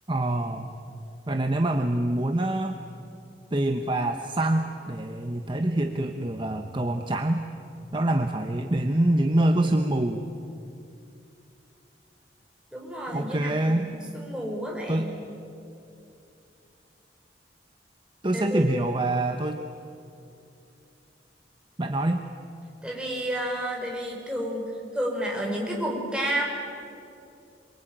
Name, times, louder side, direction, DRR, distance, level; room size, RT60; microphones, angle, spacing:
voice 1, 0.1-0.7 1.3-2.8 3.5-7.4 7.9-10.3 13.1-13.9 14.9-15.1 18.2-19.6 21.8-22.3, right 1 dB, 30° right, 5 dB, 1.1 m, -25 dB
voice 2, 12.7-15.1 18.3-18.7 22.8-26.4, equal, 5° right, -2 dB, 5.4 m, -31 dB
27.5 x 23.5 x 9.2 m, 2.7 s
head